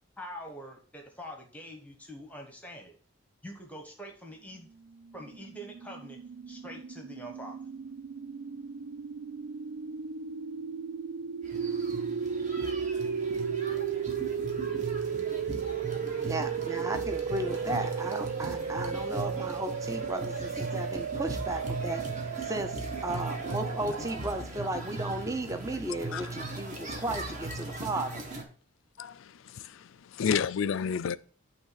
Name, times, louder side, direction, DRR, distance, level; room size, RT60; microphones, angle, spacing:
voice 1, 0.2-2.9 3.4-4.7 5.1-6.2 6.5-7.6, equal, 5° left, 1.0 m, -44 dB
sound 1, 5.0-24.2, right 6 dB, 65° right, 0.3 m, -35 dB
sound 2, 11.4-28.4, right 2 dB, 35° right, 1.3 m, -39 dB
voice 2, 16.2-28.2, right 1 dB, 15° right, 0.5 m, -35 dB
voice 3, 29.0-31.2, left 7 dB, 65° left, 0.4 m, -31 dB
8.9 x 3.2 x 5.6 m
head